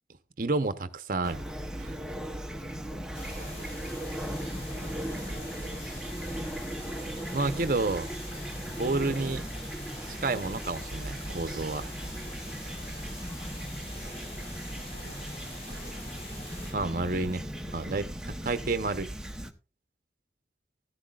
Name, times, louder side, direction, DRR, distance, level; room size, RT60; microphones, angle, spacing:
voice 1, 0.4-1.4 1.8-2.0 7.3-8.1 8.6-9.4 10.1-11.9 16.7-19.1, right 3 dB, 50° right, 0.8 m, -30 dB
Fowl / Chirp tweet, 1.2-19.5, equal, 5° right, 0.8 m, -37 dB
voice 2, 2.6-3.7 4.7-6.7 14.7-16.0, right 1 dB, 70° left, 5.2 m, -52 dB
sound 1, 3.1-16.7, left 1 dB, 35° left, 6.7 m, -45 dB
14.5 x 13.0 x 2.4 m
head